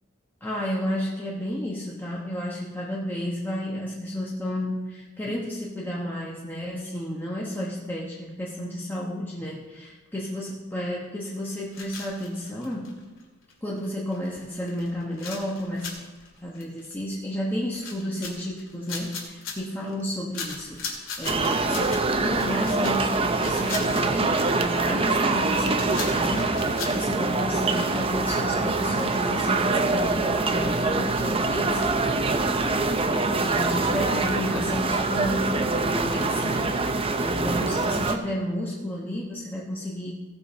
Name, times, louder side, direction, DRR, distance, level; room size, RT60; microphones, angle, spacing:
voice 1, 0.4-12.9 13.6-15.9 16.4-20.9 21.2-40.2, equal, 10° left, -5 dB, 1.1 m, -32 dB
sound 1, 11.7-13.2 13.5-13.6 13.8-13.9 14.1-14.4 14.7-17.3 17.7-20.0 20.3-27.0, left 4 dB, 70° left, 2.3 m, -38 dB
sound 2, 21.2-38.2, right 3 dB, 25° right, 0.7 m, -24 dB
17.0 x 7.0 x 4.4 m, 1.3 s
head